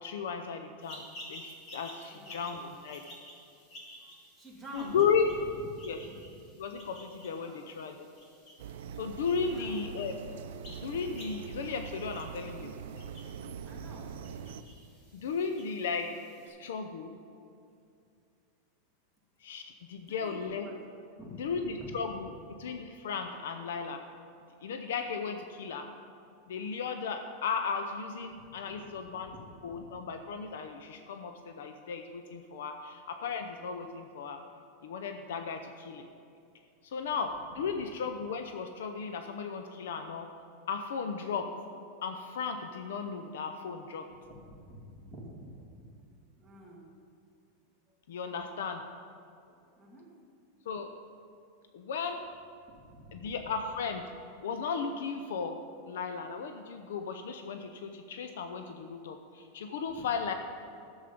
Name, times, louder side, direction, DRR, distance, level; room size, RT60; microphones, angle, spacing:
voice 1, 0.0-3.0 4.7-5.3 5.8-6.0 6.6-7.9 9.0-10.2 10.7-12.7 15.1-16.1 16.5-17.1 19.4-20.6 21.4-22.3 22.6-24.0 24.6-25.9 26.5-29.3 29.6-34.4 34.8-36.1 36.8-40.3 40.7-41.5 42.0-44.1 48.1-48.8 50.7-50.9 51.7-52.2 53.1-54.0 54.4-55.6 55.9-60.3, left 6 dB, 85° left, 6 dB, 0.6 m, -35 dB
sound 1, 0.8-16.5, equal, 30° left, 2.4 m, -53 dB
voice 2, 2.0-2.4 4.0-5.0 5.6-6.3 7.3-7.6 9.4-9.9 13.4-14.2 20.0-20.8 21.2-22.0 28.3-29.8 37.5-37.6 44.3-45.9 46.4-46.9 47.9-48.0 49.5-50.1 52.7-53.5 59.9-60.1, right 1 dB, ahead, -6 dB, 1.9 m, -50 dB
sound 2, 8.6-14.6, right 7 dB, 80° right, 0.5 m, -43 dB
11.5 x 7.3 x 5.2 m, 2.5 s
supercardioid pair, 165°, 0 cm